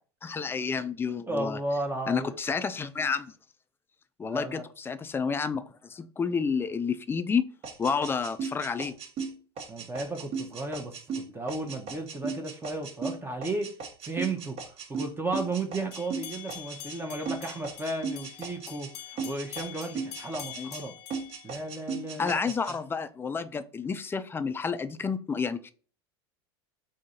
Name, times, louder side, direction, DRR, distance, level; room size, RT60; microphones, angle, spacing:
voice 1, 0.2-1.6 2.1-3.3 4.2-7.4 7.8-8.9 20.6-20.7 22.2-25.7, left 5 dB, 15° left, 0.4 m, -30 dB
voice 2, 1.3-2.4 4.2-4.7 9.7-13.7 14.0-14.6 14.9-20.9 21.4-22.4, right 2 dB, 15° right, 0.7 m, -34 dB
sound 1, 7.6-17.0 17.3-18.9 19.2-20.8 21.1-22.8, right 5 dB, 45° right, 1.0 m, -37 dB
sound 2, 15.9-22.1, left 11 dB, 75° left, 0.7 m, -45 dB
3.7 x 2.7 x 4.1 m
hypercardioid pair, 95°, 14 cm